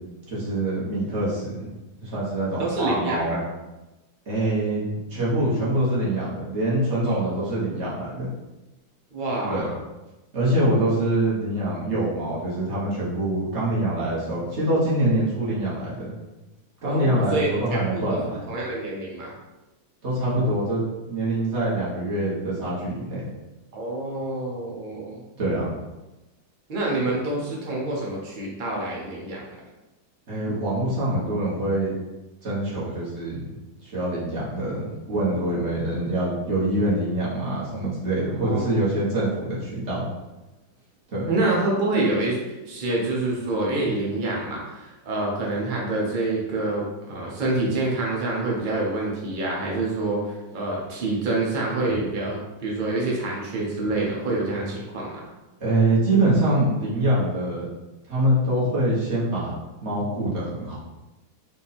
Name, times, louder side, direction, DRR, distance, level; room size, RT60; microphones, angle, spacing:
voice 1, 0.3-1.7 2.0-3.4 4.3-4.8 5.1-8.3 9.5-9.7 10.3-16.1 16.8-18.5 20.0-23.2 25.4-25.7 30.3-31.9 32.4-33.5 33.8-40.1 41.1-41.2 55.6-57.7 58.1-59.5 59.8-60.8, right 1 dB, 40° right, -7 dB, 1.5 m, -24 dB
voice 2, 2.6-3.4 7.1-7.5 9.1-9.7 16.8-18.2 18.5-19.3 23.7-25.2 26.7-29.4 38.4-38.6 41.3-42.4 42.7-55.2, right 2 dB, 80° right, -3 dB, 0.4 m, -27 dB
3.9 x 2.7 x 4.1 m, 1.1 s
omnidirectional pair, 2.2 m